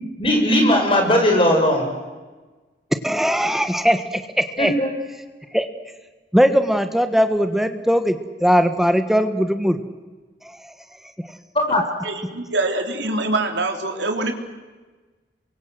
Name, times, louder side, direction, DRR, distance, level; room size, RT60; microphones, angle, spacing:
voice 1, 0.2-1.9 4.6-4.9 11.5-11.8, left 1 dB, 30° left, 2 dB, 6.1 m, -18 dB
voice 2, 3.0-4.7 5.5-5.7 6.3-9.8 10.4-10.6 11.2-11.3, equal, ahead, 8 dB, 1.4 m, -19 dB
voice 3, 12.0-14.3, right 2 dB, 85° right, 4 dB, 3.7 m, -24 dB
29.0 x 24.0 x 7.9 m, 1.3 s
head